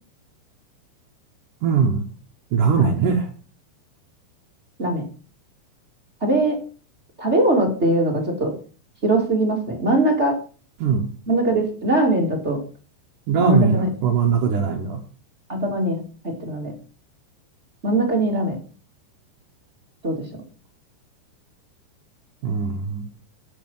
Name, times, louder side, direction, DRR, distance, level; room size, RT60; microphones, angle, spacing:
voice 1, 1.6-2.0 2.5-3.2 10.8-11.1 13.3-15.0 22.4-23.0, right 6 dB, 80° right, 1.8 m, -20 dB
voice 2, 6.2-6.6 7.2-8.5 9.0-10.4 11.3-12.6 13.4-13.9 15.5-16.7 17.8-18.5 20.0-20.2, right 1 dB, 30° right, 1.1 m, -21 dB
15.0 x 5.6 x 5.6 m
omnidirectional pair, 5.6 m